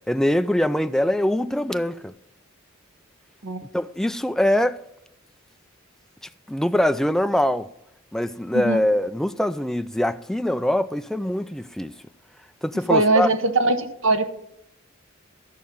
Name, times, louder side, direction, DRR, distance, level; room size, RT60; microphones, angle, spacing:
voice 1, 0.1-2.1 3.7-4.8 6.5-7.7 8.1-11.9 12.6-13.3, left 1 dB, ahead, 0.3 m, -23 dB
voice 2, 8.5-8.9 12.9-14.3, right 3 dB, 70° right, 1.0 m, -21 dB
13.5 x 5.2 x 7.1 m
head